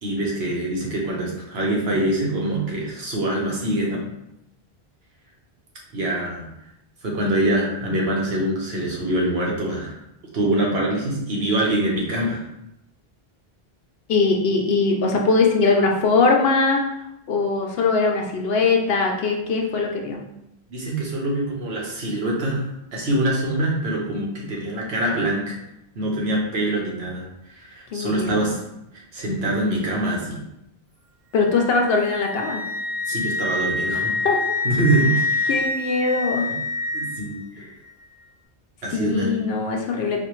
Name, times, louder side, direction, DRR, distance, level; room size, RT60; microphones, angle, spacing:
voice 1, 0.0-4.0 5.9-6.5 7.0-10.0 10.3-12.4 20.7-22.6 22.9-25.6 25.9-28.6 28.9-30.4 33.0-34.1 34.6-35.6 36.9-37.7 38.8-39.4, right 1 dB, 80° right, -2 dB, 1.2 m, -24 dB
voice 2, 14.1-16.8 17.3-20.2 27.9-28.4 31.3-32.6 34.2-34.6 35.5-36.5 38.9-40.2, left 4 dB, 75° left, 2 dB, 0.8 m, -21 dB
Wind instrument woodwind instrument, 31.4-37.4, left 2 dB, 25° right, 1.1 m, -26 dB
4.2 x 2.4 x 3.0 m, 0.83 s
omnidirectional pair, 1.0 m